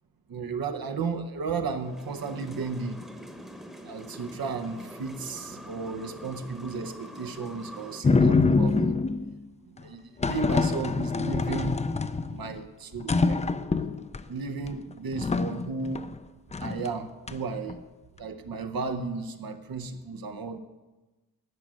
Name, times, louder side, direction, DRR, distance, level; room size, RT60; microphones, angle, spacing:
voice 1, 0.3-3.0 3.8-9.0 9.7-11.8 12.3-13.4 14.3-16.1 16.6-17.8 18.2-20.6, right 4 dB, 85° right, 7 dB, 0.8 m, -34 dB
sound 1, 1.8-8.0, equal, ahead, 0.9 m, -44 dB
sound 2, 8.0-9.3 10.2-12.6 12.9-14.2 14.7-14.8 15.1-16.2 16.5-16.9 17.3-17.8, left 4 dB, 20° left, 0.4 m, -25 dB
11.0 x 6.2 x 9.0 m, 1.2 s
wide cardioid pair, 135°, 35 cm